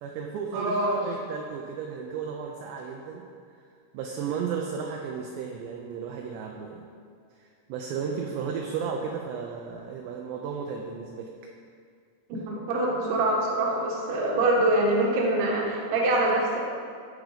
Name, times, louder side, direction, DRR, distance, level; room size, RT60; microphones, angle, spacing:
voice 1, 0.0-0.7 1.0-3.3 3.9-6.9 7.4-11.3, right 6 dB, 80° right, 1 dB, 2.5 m, -34 dB
voice 2, 0.5-1.0 12.3-16.6, right 2 dB, 60° right, -2 dB, 2.3 m, -24 dB
14.5 x 5.0 x 5.0 m, 2.2 s
omnidirectional pair, 5.6 m